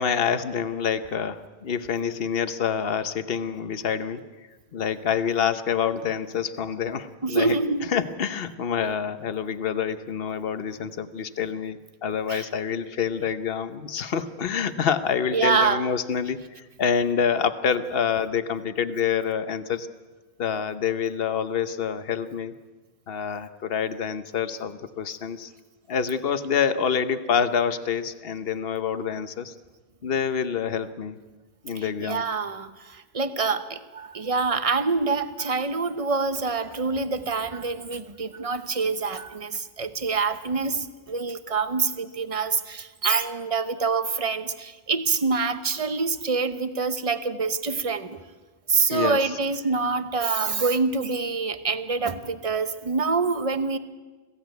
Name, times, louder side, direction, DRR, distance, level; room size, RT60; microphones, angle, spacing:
voice 1, 0.0-4.2 4.7-16.4 16.8-19.9 20.4-22.5 23.1-25.5 25.9-29.5 30.0-31.2 31.6-32.3 48.9-49.4, left 7 dB, 70° left, 12 dB, 1.2 m, -27 dB
voice 2, 7.2-7.9 12.3-12.5 15.3-15.9 31.7-48.2 48.7-53.8, right 4 dB, 35° right, 11 dB, 1.0 m, -26 dB
22.0 x 16.0 x 9.2 m, 1.3 s
omnidirectional pair, 1.0 m